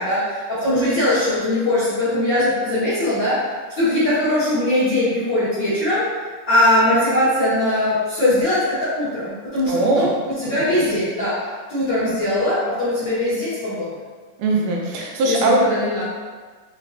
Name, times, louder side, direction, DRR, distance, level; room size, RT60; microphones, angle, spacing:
voice 1, 0.0-3.4 3.7-6.1 6.5-11.4 11.7-13.9 15.2-16.0, left 1 dB, 45° left, -13 dB, 1.7 m, -20 dB
voice 2, 9.7-10.1 14.4-15.6, right 2 dB, 80° right, -2 dB, 2.2 m, -20 dB
5.7 x 3.5 x 2.6 m, 1.5 s
omnidirectional pair, 3.6 m